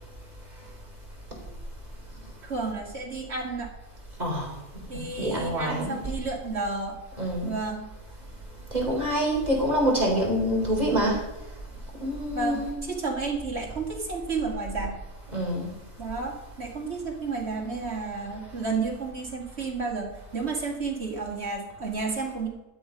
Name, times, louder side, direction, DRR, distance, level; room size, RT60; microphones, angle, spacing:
voice 1, 2.4-3.7 4.9-7.0 7.4-7.9 12.3-15.0 16.0-22.5, right 4 dB, 55° right, 0 dB, 2.6 m, -31 dB
voice 2, 4.9-6.0 7.2-7.6 8.7-11.2 12.0-12.7 15.3-15.7, equal, 30° right, -2 dB, 3.9 m, -26 dB
12.5 x 8.3 x 5.3 m, 1.0 s
omnidirectional pair, 1.3 m